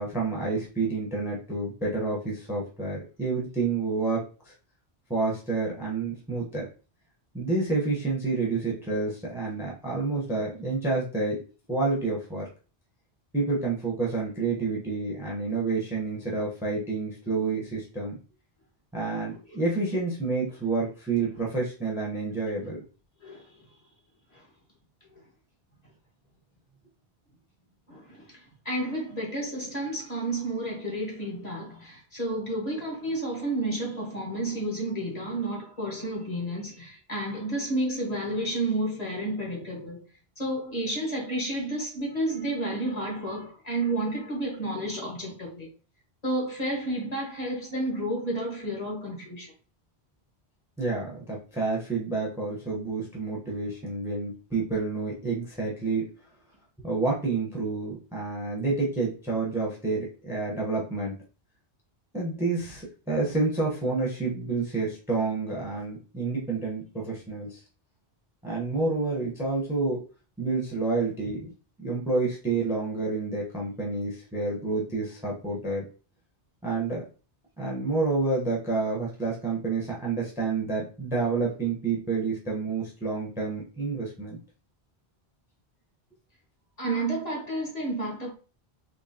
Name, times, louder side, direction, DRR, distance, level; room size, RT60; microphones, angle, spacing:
voice 1, 0.0-4.5 5.1-6.7 7.3-11.4 11.7-12.5 13.3-18.2 18.9-22.8 50.8-56.1 56.8-61.1 62.1-67.6 68.4-70.0 70.4-71.5 71.8-75.8 76.6-77.0 77.6-84.4, right 3 dB, 5° right, 0.9 m, -29 dB
voice 2, 23.2-23.7 24.3-24.4 27.9-40.0 40.4-45.7 46.2-49.5 86.8-88.3, right 1 dB, 40° left, 1.6 m, -31 dB
3.8 x 2.9 x 2.8 m
omnidirectional pair, 1.1 m